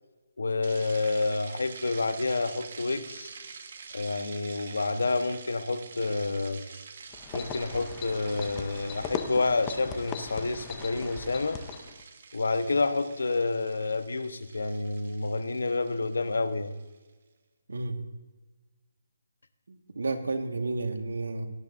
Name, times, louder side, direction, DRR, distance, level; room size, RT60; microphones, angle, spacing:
voice 1, 0.4-3.3 3.9-6.6 7.3-11.6 12.3-16.7, left 3 dB, 85° left, 10 dB, 1.0 m, -29 dB
sound 1, 0.6-16.9, right 5 dB, 45° right, 1.3 m, -47 dB
sound 2, 7.1-12.0, left 6 dB, 15° left, 0.6 m, -39 dB
voice 2, 17.7-18.0 19.7-21.5, right 3 dB, 90° right, 5 dB, 1.6 m, -31 dB
17.5 x 12.0 x 2.6 m, 1.2 s
hypercardioid pair, 170°, 0 cm